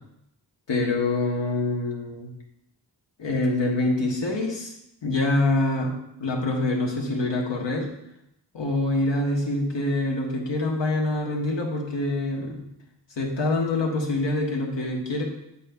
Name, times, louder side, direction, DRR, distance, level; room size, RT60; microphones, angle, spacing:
voice 1, 0.7-2.3 3.2-4.7 5.0-5.9 6.2-7.9 8.5-12.7 13.2-15.2, left 2 dB, 85° left, -1 dB, 1.3 m, -25 dB
8.4 x 5.3 x 2.3 m, 0.80 s
cardioid pair, 65°, 43 cm